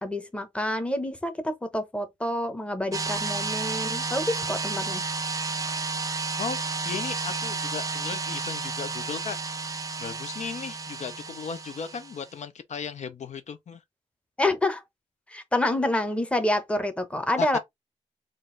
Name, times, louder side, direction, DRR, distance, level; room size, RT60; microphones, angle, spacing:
voice 1, 0.0-5.0 14.4-14.8 15.3-17.6, left 1 dB, 10° left, 0.8 m, -27 dB
sound 1, 2.9-12.3, right 4 dB, 25° right, 0.4 m, -32 dB
voice 2, 6.4-9.7 10.0-13.8 17.4-17.6, left 6 dB, 65° left, 0.5 m, -36 dB
3.8 x 2.4 x 3.7 m
wide cardioid pair, 140°, 13 cm